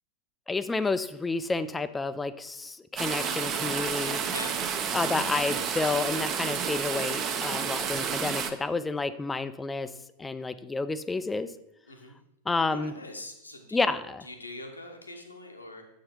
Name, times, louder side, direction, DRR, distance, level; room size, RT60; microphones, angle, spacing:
voice 1, 0.5-4.2 4.9-9.9 10.2-11.5 12.5-12.9 13.7-14.2, left 3 dB, 10° left, 13 dB, 0.4 m, -30 dB
sound 1, 3.0-8.5, right 7 dB, 30° right, 0.7 m, -30 dB
voice 2, 11.9-12.2 12.6-13.9 14.2-15.9, left 2 dB, 80° left, 4 dB, 1.1 m, -42 dB
7.8 x 5.0 x 4.4 m, 0.86 s
figure-of-eight pair, 90°, 0 cm